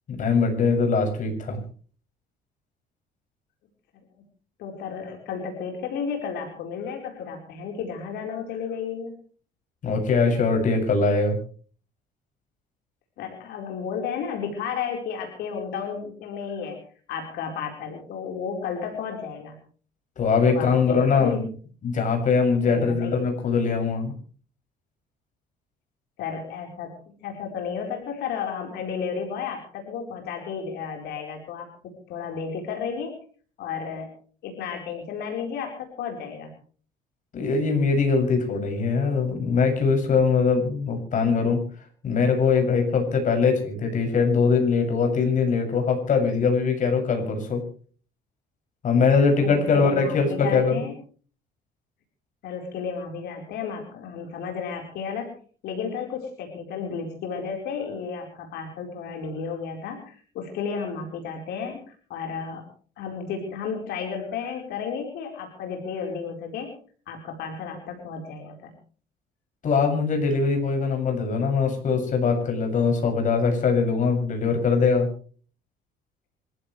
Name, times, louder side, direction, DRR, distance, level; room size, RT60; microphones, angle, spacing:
voice 1, 0.1-1.6 9.8-11.4 20.2-21.5 21.8-24.1 37.3-41.6 42.0-47.6 48.8-50.9 69.6-75.1, left 5 dB, 50° left, 4 dB, 7.2 m, -22 dB
voice 2, 4.6-9.2 13.2-16.8 17.1-19.6 20.4-21.4 22.6-23.2 26.2-33.2 33.6-34.1 34.4-36.5 49.4-50.9 52.4-55.3 55.6-62.6 63.0-66.7 67.1-68.7, left 6 dB, 80° left, 2 dB, 4.5 m, -33 dB
26.0 x 15.0 x 3.3 m, 0.43 s
cardioid pair, 110°, 17 cm